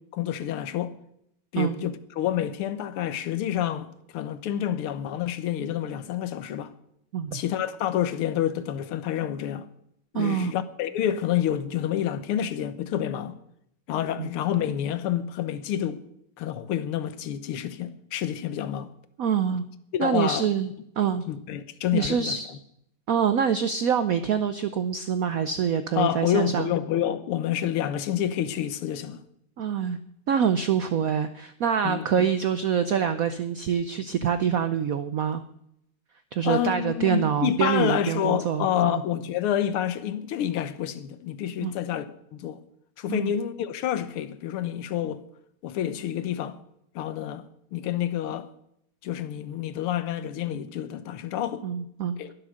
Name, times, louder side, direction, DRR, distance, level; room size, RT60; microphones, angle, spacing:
voice 1, 0.1-1.0 1.5-6.7 7.3-9.7 10.1-13.4 13.9-16.0 16.4-18.9 19.9-20.5 21.3-22.4 26.0-29.2 31.8-32.3 36.4-42.1 42.3-42.6 43.0-45.2 45.6-46.6 47.0-47.5 47.7-48.5 49.0-51.7 52.2-52.3, left 10 dB, 90° left, 1.8 m, -28 dB
voice 2, 10.1-10.5 14.2-14.3 19.2-19.6 20.0-20.7 21.0-21.3 21.9-22.5 23.1-26.7 29.6-30.0 30.3-35.4 36.3-39.0 41.6-41.7 43.1-43.3 51.6-52.2, right 8 dB, 85° right, 0.7 m, -25 dB
21.5 x 7.6 x 6.4 m
omnidirectional pair, 2.4 m